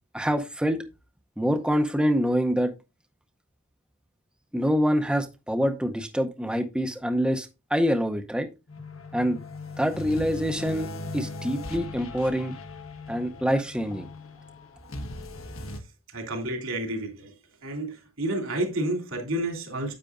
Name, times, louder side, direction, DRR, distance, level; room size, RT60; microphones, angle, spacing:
voice 1, 0.1-0.8 1.4-2.7 4.5-8.5 9.1-9.4 9.8-10.9 11.1-12.5 13.1-14.1, equal, 5° right, 0.7 m, -25 dB
sound 1, 8.7-15.8, left 2 dB, 75° left, 1.4 m, -38 dB
voice 2, 16.1-17.3 17.6-19.9, right 1 dB, 75° right, 3.2 m, -30 dB
9.9 x 8.2 x 2.5 m
head